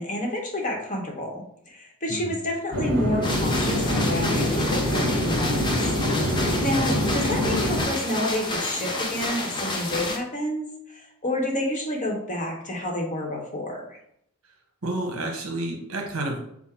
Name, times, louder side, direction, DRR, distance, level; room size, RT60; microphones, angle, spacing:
voice 1, 0.0-5.7 6.6-14.0, left 1 dB, 35° left, 0 dB, 1.0 m, -29 dB
sound 1, 2.7-7.8, left 1 dB, 40° right, 1.8 m, -25 dB
sound 2, 3.2-10.2, left 2 dB, 20° left, 0.5 m, -30 dB
voice 2, 6.2-6.6 14.8-16.4, right 2 dB, 70° right, 1 dB, 1.1 m, -30 dB
5.8 x 2.1 x 4.3 m, 0.74 s
head